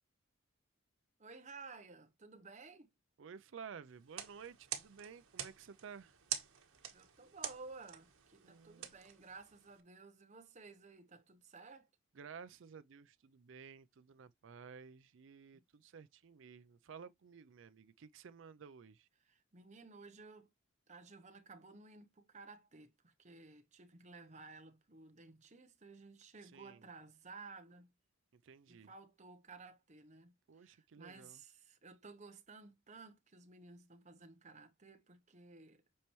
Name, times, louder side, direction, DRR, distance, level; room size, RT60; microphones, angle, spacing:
voice 1, 1.2-2.9 6.9-11.9 19.2-20.5 20.9-27.9 28.7-35.8, right 4 dB, 35° right, 0.9 m, -55 dB
voice 2, 3.2-6.2 8.4-8.9 12.1-19.1 26.4-26.8 28.3-28.9 30.5-31.4, right 6 dB, 60° right, 0.4 m, -54 dB
sound 1, 4.0-9.8, right 10 dB, 85° right, 1.3 m, -47 dB
8.4 x 4.3 x 3.1 m
head